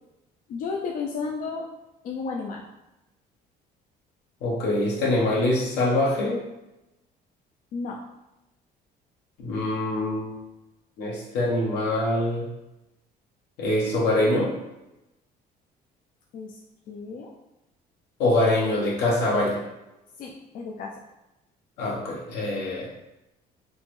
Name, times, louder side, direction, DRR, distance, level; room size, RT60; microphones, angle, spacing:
voice 1, 0.5-1.7 2.0-2.7 7.7-8.0 16.3-16.6 16.9-17.3 20.2-21.0, left 4 dB, 55° left, 0 dB, 0.4 m, -33 dB
voice 2, 4.4-6.4 9.4-10.4 11.0-12.5 13.6-14.5 18.2-19.6 21.8-22.9, left 1 dB, 85° left, -3 dB, 1.0 m, -24 dB
3.4 x 2.0 x 3.0 m, 0.94 s
cardioid pair, 110°, 17 cm